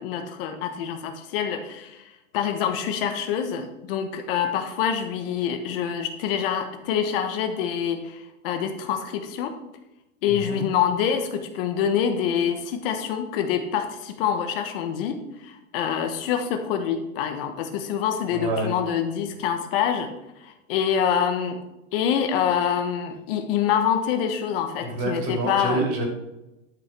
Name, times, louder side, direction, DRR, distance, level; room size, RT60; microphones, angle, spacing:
voice 1, 0.0-2.1 2.3-9.5 10.2-15.2 15.4-20.1 20.4-21.6 21.9-25.8, left 8 dB, 45° left, 6 dB, 1.2 m, -26 dB
voice 2, 10.3-10.6 18.3-18.7 24.8-26.1, right 2 dB, 35° right, 2 dB, 3.1 m, -27 dB
12.0 x 5.8 x 6.0 m, 0.94 s
supercardioid pair, 155°, 40 cm